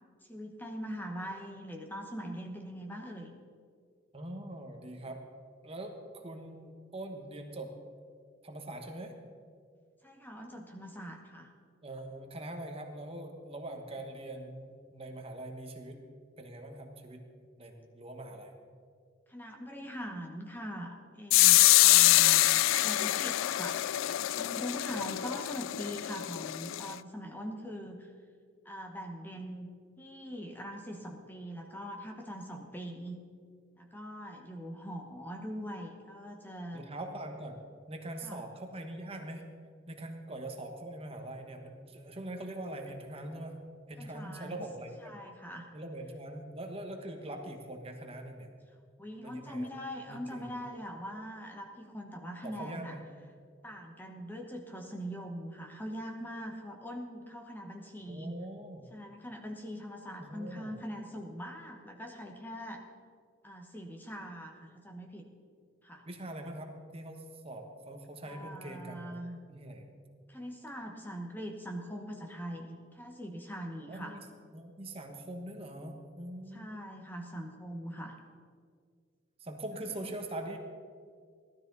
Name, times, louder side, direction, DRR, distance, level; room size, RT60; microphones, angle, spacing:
voice 1, 0.2-3.3 10.0-11.5 19.3-28.1 28.6-33.2 33.8-36.8 38.2-38.4 44.0-44.7 45.0-45.7 49.0-53.0 53.6-58.4 58.9-62.8 63.4-65.3 65.8-66.0 68.2-69.4 70.3-74.2 76.5-78.2 80.0-80.1, equal, 10° left, 2 dB, 1.1 m, -42 dB
voice 2, 4.1-5.2 5.6-7.7 8.4-9.2 11.8-16.0 16.4-17.2 17.6-18.5 36.7-39.4 39.9-43.6 43.9-45.2 45.7-48.5 49.2-49.7 50.1-50.4 52.4-53.0 58.1-58.9 60.2-60.7 66.1-69.2 69.5-69.8 73.9-74.2 74.5-76.7 79.4-80.6, right 1 dB, 30° right, 4 dB, 1.3 m, -43 dB
sound 1, 21.3-27.0, left 16 dB, 90° left, 0.3 m, -25 dB
17.0 x 12.5 x 4.0 m, 2.1 s
head